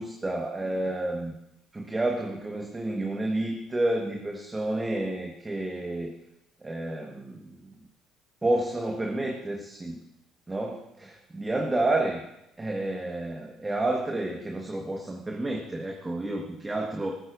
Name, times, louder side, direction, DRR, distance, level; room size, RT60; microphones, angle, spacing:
voice 1, 0.0-1.3 1.7-6.1 6.6-7.9 8.4-10.0 10.5-12.2 12.6-17.1, right 2 dB, 20° right, 1 dB, 1.5 m, -30 dB
14.0 x 14.0 x 2.7 m, 0.83 s
hypercardioid pair, 50°, 0 cm